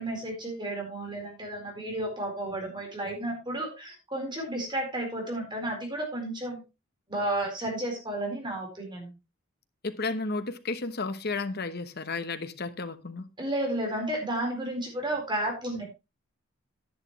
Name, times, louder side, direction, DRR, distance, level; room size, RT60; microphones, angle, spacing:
voice 1, 0.0-6.6 7.1-9.1 13.4-15.8, right 1 dB, 20° right, 4.3 m, -32 dB
voice 2, 9.8-13.3, left 3 dB, 50° left, 1.1 m, -33 dB
11.0 x 10.5 x 3.2 m
head